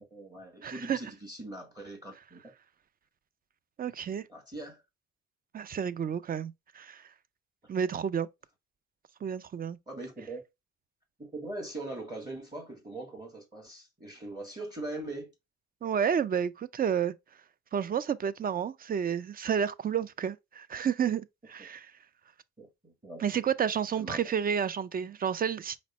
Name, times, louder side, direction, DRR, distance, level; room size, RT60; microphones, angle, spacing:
voice 1, 0.0-2.5 4.3-4.8 9.9-10.4 11.2-15.3 22.6-23.4 24.0-24.2, right 2 dB, 15° right, 1.5 m, -41 dB
voice 2, 0.6-1.0 3.8-4.2 5.5-7.0 7.7-8.3 9.2-9.8 15.8-17.1 17.7-21.9 23.2-25.8, right 8 dB, 30° right, 0.4 m, -30 dB
5.1 x 2.1 x 4.0 m
cardioid pair, 90°, 30 cm